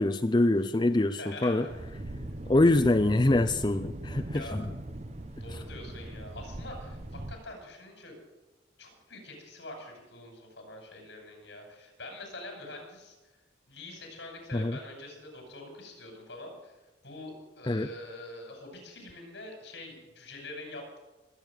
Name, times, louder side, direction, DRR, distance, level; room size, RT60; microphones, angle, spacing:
voice 1, 0.0-1.7 2.5-4.7 5.5-5.6 14.5-14.8 17.7-17.9, left 2 dB, 25° left, 8 dB, 0.5 m, -25 dB
voice 2, 1.1-1.7 4.3-4.6 5.4-8.1 8.8-13.2 13.7-16.7 17.0-21.0, left 2 dB, 70° left, 2 dB, 6.3 m, -45 dB
Thunder, 1.7-7.4, right 1 dB, 35° right, 0.9 m, -40 dB
21.5 x 8.8 x 6.6 m, 1.1 s
head